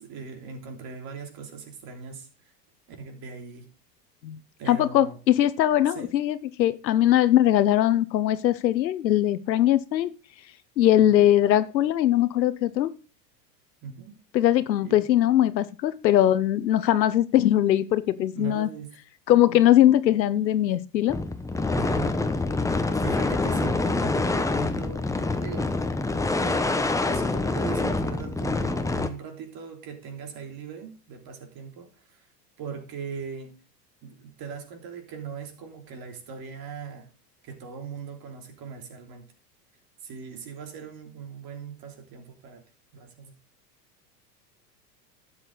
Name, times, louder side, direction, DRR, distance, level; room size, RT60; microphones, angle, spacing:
voice 1, 0.0-2.3 3.0-3.7 4.6-5.2 5.9-6.2 10.9-11.3 13.8-14.2 14.8-15.0 18.3-19.0 21.7-22.2 22.9-25.1 25.4-25.8 26.2-32.2 32.6-33.6 34.0-37.1 37.4-39.3 40.0-42.6 42.9-43.3, right 6 dB, 45° right, 3.2 m, -40 dB
voice 2, 4.7-10.1 10.8-12.9 14.3-18.7 19.3-21.2, left 12 dB, 85° left, 1.0 m, -21 dB
sound 1, 21.1-29.1, left 3 dB, 5° left, 1.0 m, -26 dB
12.0 x 8.3 x 4.0 m
hypercardioid pair, 90°, 50 cm